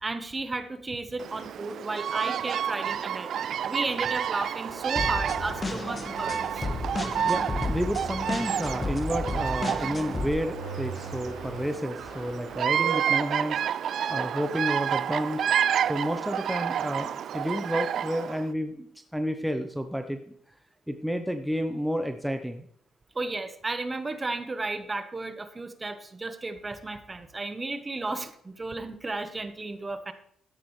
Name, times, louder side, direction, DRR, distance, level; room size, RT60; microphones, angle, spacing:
voice 1, 0.0-3.3 3.6-6.4 23.1-30.1, right 3 dB, 25° right, 9 dB, 1.1 m, -33 dB
Bird vocalization bird call bird song, 1.2-18.4, right 9 dB, 65° right, 0.3 m, -30 dB
sound 1, 4.7-7.0 9.6-12.7, right 2 dB, 70° left, 5.0 m, -43 dB
sound 2, 5.0-10.3, left 3 dB, 25° left, 1.2 m, -33 dB
voice 2, 7.3-13.6 14.1-15.5 15.9-20.2 20.9-22.7, equal, ahead, 6 dB, 0.7 m, -30 dB
12.5 x 10.0 x 3.2 m, 0.68 s
cardioid pair, 90°, 0 cm